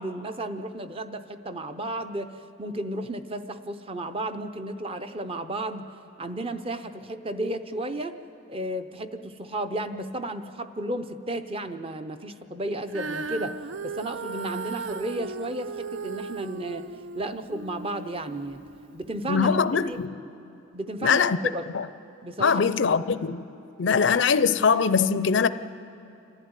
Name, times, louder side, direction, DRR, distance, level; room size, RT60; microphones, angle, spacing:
voice 1, 0.0-5.9 6.2-8.2 8.5-13.6 13.8-16.9 17.1-18.6 18.9-19.6 19.9-20.0 20.7-21.2 21.5-21.7 22.2-22.6 22.9-23.0, right 1 dB, 25° right, 9 dB, 0.7 m, -33 dB
Female singing, 12.9-19.2 19.9-20.0, right 4 dB, 65° right, 0.4 m, -37 dB
voice 2, 19.3-20.2 21.0-21.4 21.7-21.9 22.4-23.5 23.8-25.5, left 6 dB, 60° left, 13 dB, 0.5 m, -22 dB
27.0 x 12.0 x 9.8 m, 2.7 s
head